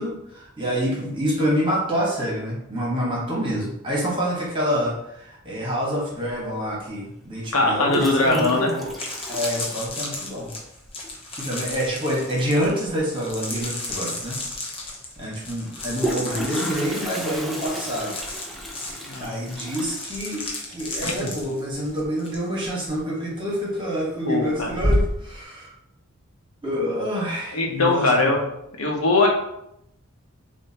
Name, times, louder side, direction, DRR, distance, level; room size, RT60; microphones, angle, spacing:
voice 1, 0.0-8.9 9.3-10.5 11.4-14.4 15.2-18.1 19.2-25.7 26.6-28.3, equal, 20° right, -5 dB, 1.6 m, -27 dB
Toilet flush, 6.3-6.4 7.6-10.4 10.7-10.8 11.0-11.1 11.4-11.8 13.5-13.6 14.0-14.1 15.6-22.3 22.6-23.0 23.5-24.0 24.4-25.4, equal, ahead, 0.5 m, -31 dB
voice 2, 7.5-8.7 19.1-19.4 21.0-21.3 24.3-24.7 27.5-28.5 28.8-29.3, left 2 dB, 75° left, 1 dB, 0.9 m, -21 dB
sound 1, 8.9-22.4 22.6-23.0, left 2 dB, 25° left, 0.9 m, -35 dB
6.6 x 2.7 x 3.0 m, 0.80 s
head